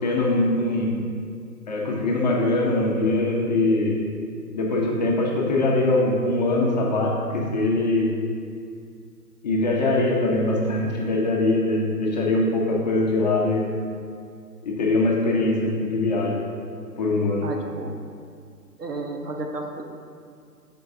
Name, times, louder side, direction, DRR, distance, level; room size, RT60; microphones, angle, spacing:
voice 1, 0.0-0.9 1.7-4.0 4.5-8.1 9.4-13.6 14.6-16.4 17.0-17.5, left 2 dB, 25° left, -3 dB, 0.8 m, -22 dB
voice 2, 17.4-18.0 18.8-19.8, right 2 dB, 70° right, 3 dB, 1.1 m, -32 dB
13.5 x 4.6 x 2.7 m, 2.3 s
figure-of-eight pair, 145°, 49 cm